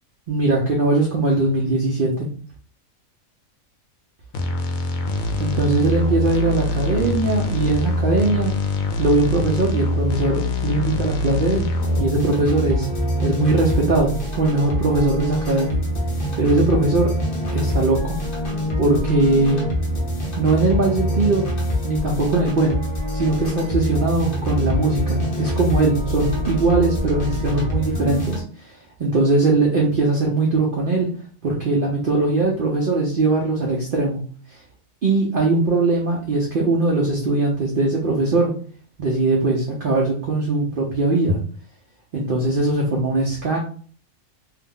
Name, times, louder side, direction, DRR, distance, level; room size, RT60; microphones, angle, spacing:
voice 1, 0.3-2.3 5.4-8.6 9.0-11.7 12.0-12.9 13.2-15.8 16.4-17.1 17.5-18.2 18.8-19.6 20.4-21.5 21.8-22.8 23.1-28.7 29.0-31.1 31.4-34.2 35.0-38.5 39.0-41.4 42.1-43.6, right 2 dB, 60° right, -1 dB, 0.6 m, -20 dB
sound 1, 4.3-12.0, left 2 dB, 75° left, 1.0 m, -24 dB
sound 2, 11.8-28.4, equal, 45° left, 0.9 m, -25 dB
2.7 x 2.0 x 3.6 m, 0.43 s
omnidirectional pair, 1.5 m